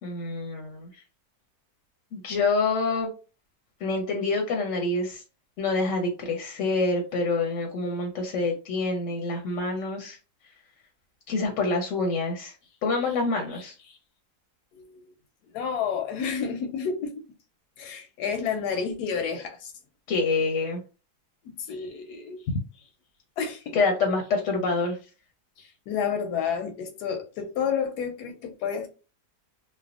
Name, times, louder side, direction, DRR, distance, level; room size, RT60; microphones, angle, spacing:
voice 1, 0.0-1.0 2.1-3.1 3.8-5.2 5.6-10.2 11.3-12.5 12.8-13.7 20.1-20.8 23.7-25.0, left 3 dB, 65° left, 0.8 m, -26 dB
voice 2, 14.7-15.0 15.5-17.1 17.8-19.7 21.4-22.4 23.4-23.8 25.6-28.9, left 6 dB, 80° left, 1.1 m, -30 dB
3.3 x 2.0 x 2.3 m
omnidirectional pair, 1.7 m